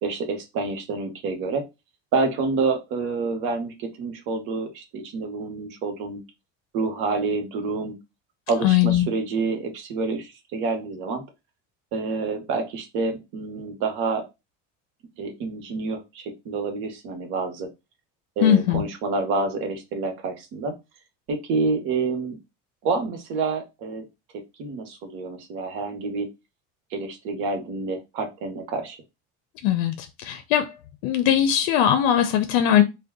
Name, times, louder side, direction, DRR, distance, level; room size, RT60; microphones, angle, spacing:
voice 1, 0.0-1.6 2.1-6.2 6.7-7.9 8.5-11.2 11.9-14.3 15.2-17.7 18.4-20.7 21.3-22.4 22.8-24.1 24.6-26.3 26.9-29.0, right 4 dB, 60° right, 0.9 m, -28 dB
voice 2, 8.6-9.1 18.4-18.8 29.6-30.8 31.0-32.8, left 10 dB, 75° left, 0.5 m, -20 dB
2.6 x 2.2 x 3.5 m
cardioid pair, 175°, 35 cm